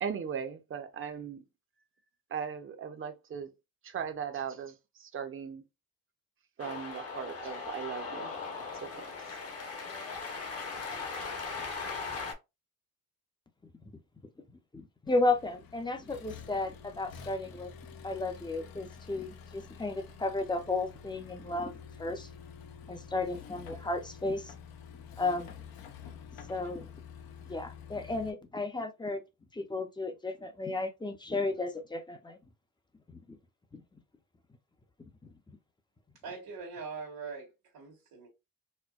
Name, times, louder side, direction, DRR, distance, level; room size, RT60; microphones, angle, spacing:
voice 1, 0.0-1.4 2.3-3.5 3.8-5.6 6.6-8.3 8.8-9.0, right 7 dB, 35° right, 0.6 m, -38 dB
Cheering, 6.6-12.3, left 4 dB, 40° left, 0.9 m, -39 dB
voice 2, 14.7-17.7 18.0-21.7 22.0-22.3 22.9-24.5 25.2-25.6 26.5-26.9 27.5-29.2 29.5-32.4 33.3-33.4 33.7-33.8 35.2-35.6, left 2 dB, 15° left, 0.5 m, -33 dB
Accelerating revving vroom, 15.1-28.3, left 7 dB, 75° left, 0.7 m, -49 dB
voice 3, 36.2-38.3, right 5 dB, 80° right, 1.3 m, -42 dB
4.3 x 2.1 x 2.3 m
cardioid pair, 135°, 36 cm